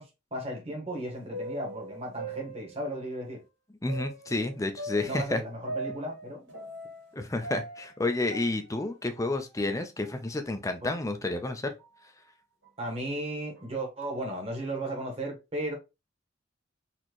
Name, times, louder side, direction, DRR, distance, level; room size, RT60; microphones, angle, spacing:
voice 1, 0.0-3.4 5.0-6.5 10.8-10.9 12.8-15.8, right 1 dB, 30° right, 1.6 m, -35 dB
sound 1, 0.9-3.1 3.9-7.1 7.4-9.8 10.0-10.1 10.9-11.0 11.8-12.0 12.6-12.7 13.6-13.9, right 2 dB, 75° right, 2.1 m, -41 dB
voice 2, 3.8-5.4 7.1-11.7, left 2 dB, 15° left, 0.5 m, -30 dB
4.2 x 3.0 x 3.0 m
head